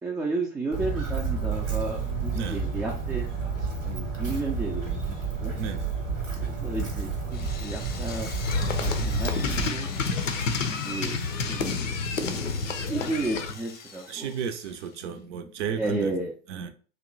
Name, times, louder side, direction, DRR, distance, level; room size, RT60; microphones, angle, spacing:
voice 1, 0.0-5.6 6.4-8.3 8.8-9.9 10.7-11.2 11.5-11.8 12.2-12.5 12.8-14.3 15.7-16.3, right 2 dB, 10° right, 0.3 m, -33 dB
Walk footsteps, 0.7-9.7, right 5 dB, 85° right, 1.1 m, -30 dB
Drill, 7.3-15.2, left 6 dB, 25° left, 0.7 m, -43 dB
sound 1, 8.4-13.5, left 4 dB, 85° left, 0.5 m, -29 dB
voice 2, 14.1-16.2 16.5-16.7, right 7 dB, 65° right, 0.6 m, -33 dB
2.9 x 2.2 x 3.8 m
figure-of-eight pair, 75°, 37 cm